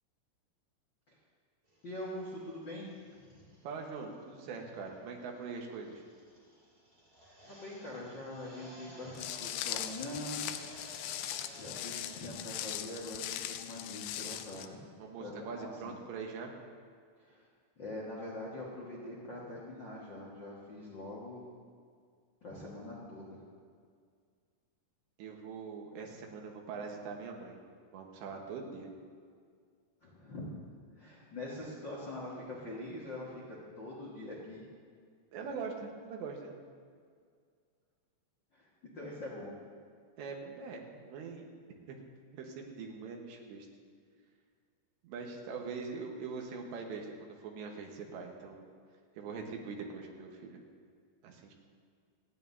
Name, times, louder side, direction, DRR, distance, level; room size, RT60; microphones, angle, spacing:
sound 1, 1.7-12.5, equal, 15° right, 2.5 m, -55 dB
voice 1, 1.8-2.9 3.3-3.4 7.5-10.6 11.5-14.8 15.2-15.9 17.2-17.5 17.8-21.5 22.4-23.4 30.0-30.5 31.0-34.6 38.5-39.5, left 1 dB, 70° left, -6 dB, 1.0 m, -43 dB
voice 2, 3.6-6.0 15.0-16.5 25.2-27.6 27.9-28.9 35.3-36.6 40.2-41.4 41.9-42.0 42.3-43.7 45.0-48.7 49.2-50.6 51.2-51.5, right 5 dB, 85° right, 1 dB, 3.5 m, -42 dB
Walk footsteps, 9.2-14.7, left 12 dB, 90° left, 2.8 m, -40 dB
27.0 x 9.4 x 2.7 m, 2.1 s
omnidirectional pair, 4.9 m